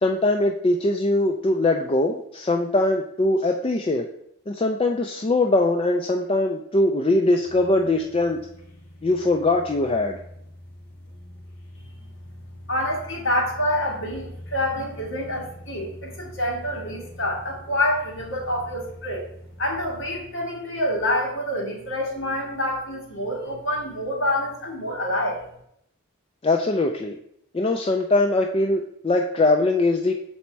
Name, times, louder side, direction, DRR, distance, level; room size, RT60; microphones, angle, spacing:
voice 1, 0.0-4.1 4.5-8.4 9.0-10.2 26.4-27.2 27.5-30.1, left 2 dB, 25° left, 3 dB, 0.3 m, -21 dB
sound 1, 7.4-20.2, equal, 75° left, 2.2 m, -44 dB
voice 2, 12.7-19.2 19.6-25.4, left 1 dB, 55° left, -1 dB, 1.8 m, -27 dB
7.1 x 4.2 x 4.4 m, 0.74 s
head